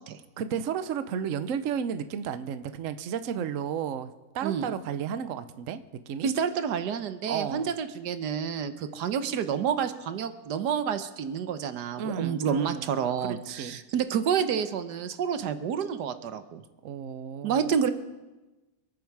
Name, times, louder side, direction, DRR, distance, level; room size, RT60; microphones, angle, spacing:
voice 1, 0.4-4.1 4.3-5.8 6.1-6.3 7.3-7.7 12.0-12.8 13.2-13.8 16.8-17.7, right 8 dB, 60° right, 11 dB, 1.0 m, -33 dB
voice 2, 4.4-4.7 6.2-16.6 17.4-17.9, right 7 dB, 85° right, 10 dB, 1.5 m, -29 dB
27.5 x 9.3 x 4.7 m, 1.1 s
omnidirectional pair, 1.7 m